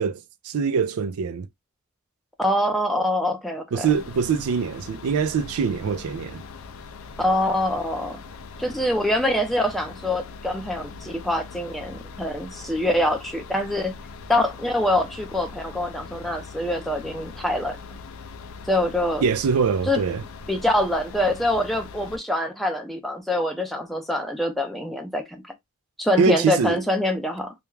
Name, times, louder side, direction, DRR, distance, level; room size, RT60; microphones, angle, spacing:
voice 1, 0.0-1.5 3.7-6.4 19.2-20.2 26.2-26.8, right 6 dB, 80° right, 0.4 m, -23 dB
voice 2, 2.4-3.9 7.2-8.1 8.6-13.9 14.3-17.8 18.7-19.2 19.9-20.0 20.5-25.4 26.0-27.5, left 1 dB, ahead, 0.4 m, -24 dB
sound 1, 3.8-22.2, left 4 dB, 75° left, 0.4 m, -41 dB
2.4 x 2.1 x 3.0 m
head